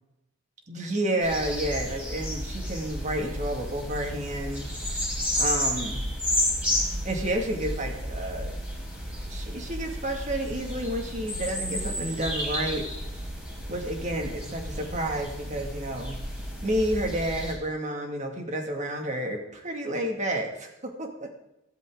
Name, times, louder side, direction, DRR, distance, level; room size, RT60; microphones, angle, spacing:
voice 1, 0.7-4.7 5.4-6.0 7.0-8.5 9.3-12.9 13.7-16.2 16.6-21.3, right 1 dB, 35° right, 3 dB, 2.5 m, -30 dB
sound 1, 1.2-17.5, equal, 10° right, 5.2 m, -32 dB
15.5 x 13.5 x 4.0 m, 0.89 s
head